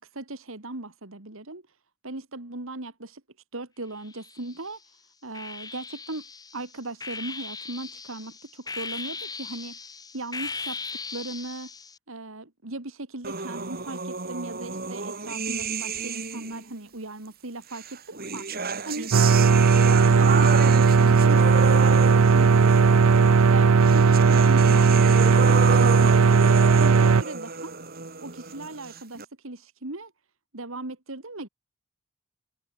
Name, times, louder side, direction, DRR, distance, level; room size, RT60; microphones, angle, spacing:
voice 1, 0.0-1.6 2.0-3.2 3.5-4.8 5.2-6.2 6.5-9.8 10.1-10.8 11.1-11.7 12.1-18.5 18.8-19.5 19.8-23.0 23.5-27.8 28.2-30.1 30.5-31.5, right 2 dB, 65° right, 2.3 m, -37 dB
sound 1, 4.0-4.7 5.3-12.0, left 4 dB, 20° left, 2.5 m, -38 dB
sound 2, 13.2-16.7 17.7-29.3, right 4 dB, 45° right, 5.6 m, -32 dB
sound 3, 19.1-27.2, right 5 dB, 80° right, 0.5 m, -17 dB
head